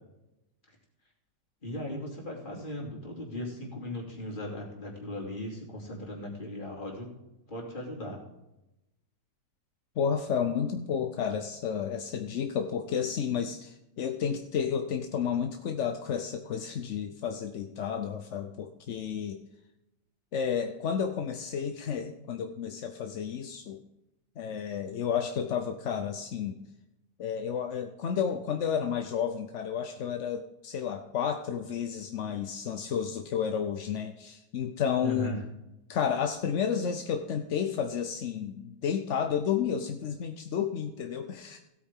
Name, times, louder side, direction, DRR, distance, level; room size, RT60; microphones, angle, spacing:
voice 1, 1.6-7.2 7.5-8.2 35.0-35.4, left 1 dB, 25° left, -1 dB, 2.8 m, -37 dB
voice 2, 10.0-19.4 20.3-23.8 24.4-26.6 27.2-35.4 35.9-41.6, left 7 dB, 60° left, 7 dB, 0.8 m, -31 dB
16.5 x 8.6 x 3.6 m, 0.93 s
omnidirectional pair, 1.9 m